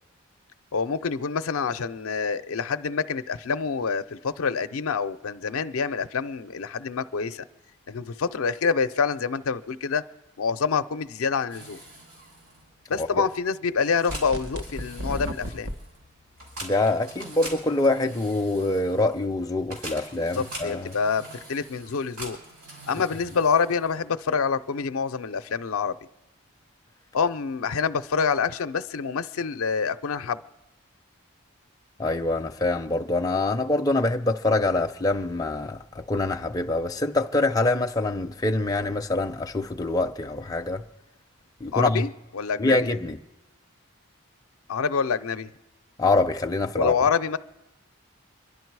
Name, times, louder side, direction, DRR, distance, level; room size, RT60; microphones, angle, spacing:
voice 1, 0.7-7.4 7.9-10.0 10.4-11.8 12.9-15.7 20.2-21.2 21.5-22.4 22.9-26.0 27.1-30.4 41.7-42.9 44.7-45.5 46.7-47.4, left 5 dB, 80° left, 0.5 m, -26 dB
sound 1, 11.5-24.2, right 1 dB, 90° right, 5.5 m, -44 dB
sound 2, 14.1-15.8, equal, 60° right, 1.0 m, -33 dB
voice 2, 16.6-21.0 32.0-40.8 41.6-42.0 42.6-43.2 46.0-46.9, left 2 dB, 15° left, 0.5 m, -25 dB
26.5 x 11.0 x 4.7 m
head